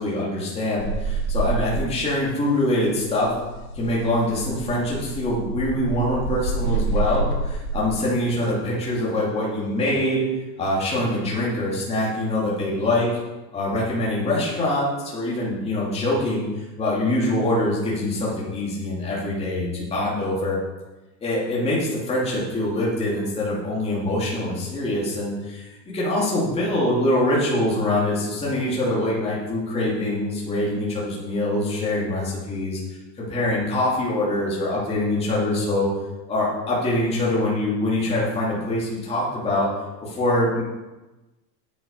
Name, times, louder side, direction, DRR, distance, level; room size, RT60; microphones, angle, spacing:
voice 1, 0.0-3.3 3.7-10.3 10.6-13.1 13.5-20.6 21.2-35.9 36.3-39.7 40.0-40.6, left 1 dB, 10° left, -6 dB, 2.6 m, -24 dB
sound 1, 0.8-2.2 2.5-7.9 9.6-10.1, right 3 dB, 60° left, 2.3 m, -27 dB
9.1 x 9.0 x 5.3 m, 1.1 s
supercardioid pair, 170°, 49 cm